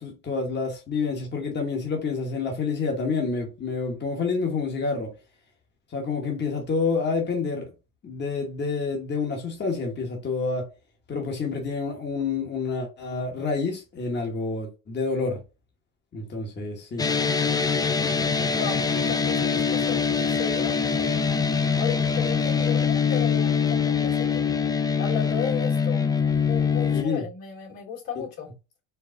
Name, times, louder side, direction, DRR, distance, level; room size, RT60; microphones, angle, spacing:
voice 1, 0.0-5.1 5.9-7.7 8.0-10.7 11.1-15.4 16.1-17.1 26.9-27.2, left 4 dB, 30° left, 1.2 m, -28 dB
sound 1, 17.0-27.0, left 6 dB, 10° left, 0.3 m, -23 dB
voice 2, 18.5-24.5 25.0-28.5, left 8 dB, 75° left, 2.4 m, -35 dB
4.6 x 2.4 x 3.7 m
cardioid pair, 100°, 34 cm